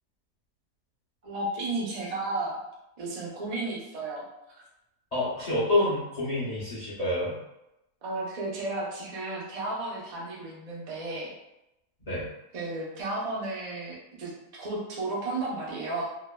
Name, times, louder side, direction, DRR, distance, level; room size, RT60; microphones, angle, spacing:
voice 1, 1.2-2.6 3.0-4.3 8.0-11.3 12.5-16.0, right 2 dB, 90° right, -5 dB, 0.3 m, -33 dB
voice 2, 5.1-7.4 12.1-12.2, left 1 dB, 50° left, -10 dB, 0.5 m, -27 dB
3.0 x 2.1 x 2.2 m, 0.89 s
omnidirectional pair, 1.7 m